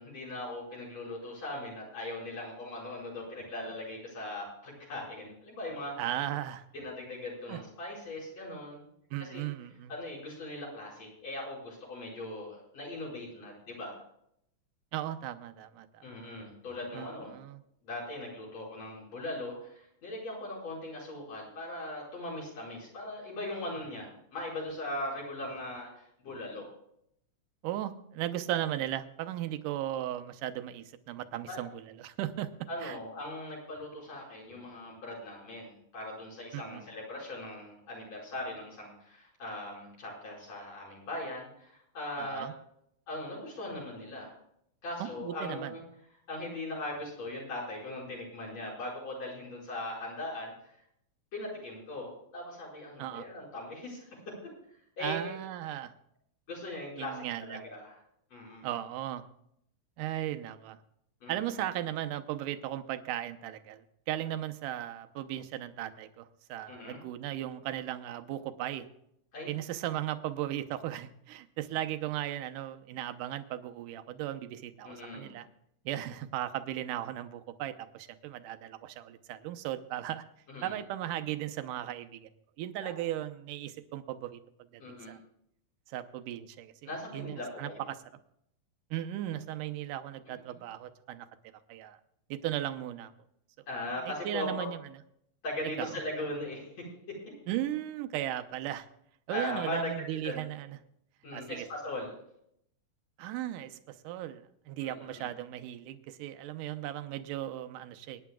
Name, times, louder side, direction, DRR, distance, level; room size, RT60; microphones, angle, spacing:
voice 1, 0.0-5.9 6.7-8.9 9.2-9.5 9.9-14.0 16.0-17.4 17.8-26.7 31.5-31.6 32.7-42.5 43.1-44.4 44.8-45.8 46.3-50.5 51.3-54.1 55.0-55.3 56.5-58.0 58.3-58.7 61.2-61.7 66.7-67.0 69.3-69.5 74.8-75.3 80.5-80.8 82.8-82.9 84.8-85.2 86.9-87.8 90.3-90.4 93.7-94.7 95.4-96.8 97.3-97.4 99.3-99.9 100.2-100.4 101.2-102.1 104.8-105.3, left 1 dB, 50° left, -4 dB, 6.2 m, -39 dB
voice 2, 6.0-6.7 7.5-7.6 9.1-9.9 14.9-16.0 16.9-17.6 27.6-31.7 32.0-32.5 32.8-33.0 36.5-36.8 42.2-42.5 45.2-45.7 53.0-53.3 55.0-55.9 57.0-57.6 58.6-59.2 60.0-60.8 61.3-68.9 69.5-75.5 75.9-80.2 80.6-82.3 82.6-84.4 84.7-85.2 85.9-86.7 87.1-88.0 88.9-91.3 91.7-92.0 92.3-93.1 94.1-94.8 95.8-96.0 97.5-98.9 99.3-100.8 101.3-101.7 103.2-103.8 104.0-108.2, right 12 dB, 80° right, 8 dB, 2.3 m, -36 dB
24.5 x 10.5 x 2.3 m, 0.73 s
omnidirectional pair, 3.8 m